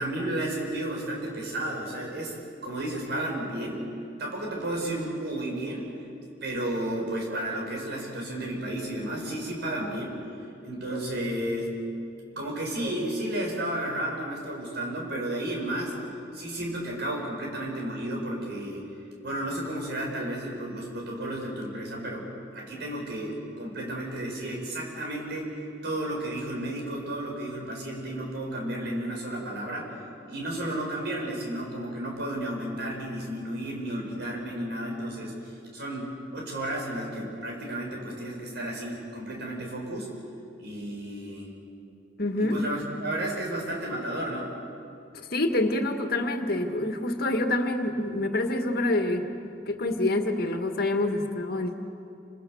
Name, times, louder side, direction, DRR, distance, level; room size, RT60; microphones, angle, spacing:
voice 1, 0.0-2.3 2.6-3.8 4.2-5.9 6.4-10.2 10.6-11.7 12.4-15.9 16.3-18.8 19.2-25.5 25.8-29.9 30.3-35.3 35.7-40.1 40.6-41.5 42.4-44.5, right 1 dB, 60° right, -1 dB, 7.8 m, -32 dB
voice 2, 42.2-42.6 45.1-51.7, left 2 dB, 55° left, 5 dB, 2.0 m, -27 dB
28.5 x 27.0 x 7.2 m, 2.7 s
head